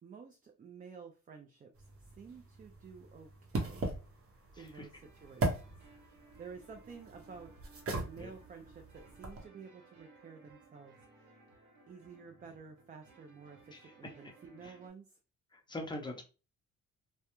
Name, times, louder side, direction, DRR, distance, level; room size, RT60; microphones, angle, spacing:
voice 1, 0.0-3.9 4.6-5.7 6.0-7.5 8.0-11.0 11.9-15.2, right 5 dB, 30° right, 4 dB, 0.4 m, -52 dB
sound 1, 1.7-9.4, right 2 dB, 50° right, 0.8 m, -40 dB
voice 2, 4.6-4.9 8.2-8.3 13.7-13.9 14.6-14.7 15.5-16.2, left 1 dB, 15° left, 2 dB, 0.6 m, -43 dB
sound 2, 4.9-14.9, right 3 dB, 75° right, 0.9 m, -61 dB
2.2 x 2.1 x 2.9 m, 0.33 s
cardioid pair, 90°, 30 cm